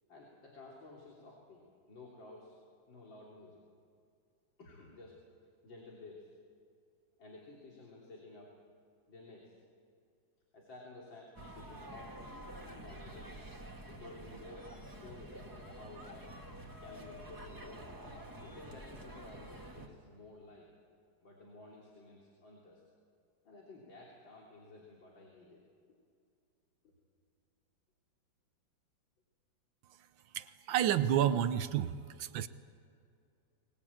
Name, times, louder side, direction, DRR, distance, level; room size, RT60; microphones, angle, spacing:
voice 1, 0.1-2.6 2.9-3.6 4.6-5.2 5.6-6.3 7.2-8.5 9.1-9.6 10.5-13.5 13.9-16.3 16.8-18.1 18.4-20.7 21.2-22.8 23.5-25.6, left 2 dB, 80° left, -3 dB, 3.9 m, -54 dB
sound 1, 11.4-19.9, right 1 dB, 10° right, 1.9 m, -48 dB
voice 2, 30.3-32.5, right 10 dB, 85° right, 12 dB, 1.6 m, -30 dB
24.5 x 20.0 x 8.7 m, 2.4 s
omnidirectional pair, 2.1 m